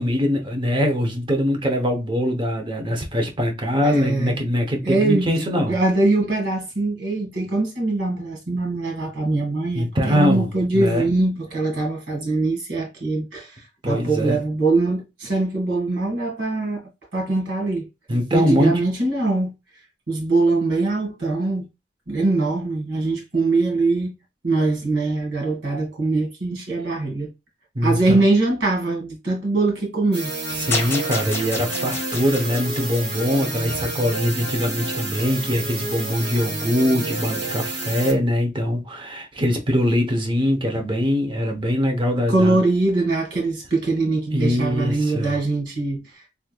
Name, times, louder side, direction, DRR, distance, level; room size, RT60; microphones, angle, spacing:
voice 1, 0.0-5.8 9.7-10.5 10.7-11.0 13.8-14.4 18.1-18.8 27.7-28.2 30.5-42.6 44.3-45.3, equal, 25° right, 0.8 m, -22 dB
voice 2, 3.8-4.4 4.8-5.3 5.6-16.8 17.1-17.9 18.3-19.5 20.1-21.7 22.1-24.1 24.4-27.3 27.8-30.3 42.3-46.2, right 2 dB, 80° right, 1.7 m, -22 dB
sound 1, 30.1-38.1, right 2 dB, 60° right, 1.3 m, -29 dB
sound 2, 30.7-34.0, left 4 dB, 15° left, 1.1 m, -31 dB
3.5 x 3.2 x 2.2 m
head